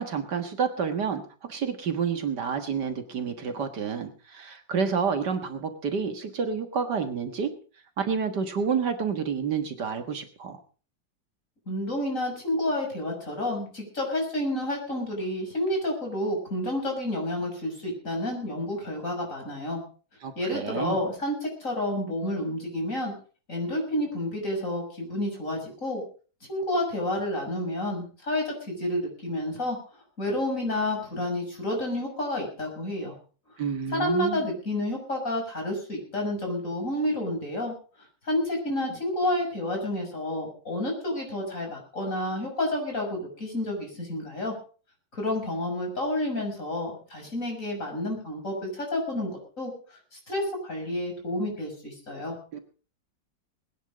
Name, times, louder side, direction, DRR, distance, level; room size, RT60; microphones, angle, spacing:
voice 1, 0.0-7.5 8.0-10.6 20.2-21.0 33.6-34.5 52.5-52.6, right 6 dB, 65° right, 7 dB, 2.2 m, -29 dB
voice 2, 11.7-19.8 20.4-23.1 23.5-26.0 26.5-29.8 30.2-33.1 33.9-37.7 38.3-44.5 45.1-49.7 50.1-52.4, left 1 dB, 45° left, 1 dB, 6.9 m, -30 dB
21.0 x 10.5 x 5.1 m, 0.39 s
omnidirectional pair, 2.0 m